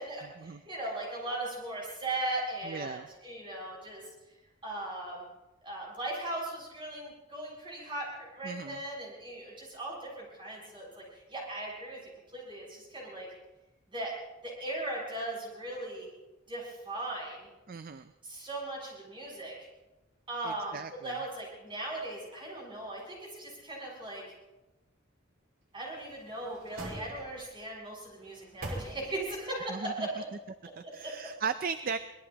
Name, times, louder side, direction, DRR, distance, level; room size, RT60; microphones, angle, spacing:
voice 1, 0.0-4.0 4.6-5.2 5.6-8.1 8.4-12.0 12.3-13.3 13.9-14.1 14.4-16.1 16.5-17.5 18.2-19.7 20.3-24.2 25.7-30.3 30.8-31.3, right 2 dB, 25° right, -4 dB, 7.3 m, -38 dB
voice 2, 2.6-3.1 8.4-8.8 17.7-18.1 20.4-21.2 29.7-30.1 30.8-32.0, right 5 dB, 45° right, 11 dB, 0.5 m, -37 dB
sound 1, 25.9-27.6 28.1-29.4 29.8-29.9, right 1 dB, 80° right, 3.4 m, -44 dB
25.0 x 19.0 x 2.9 m, 1.0 s
head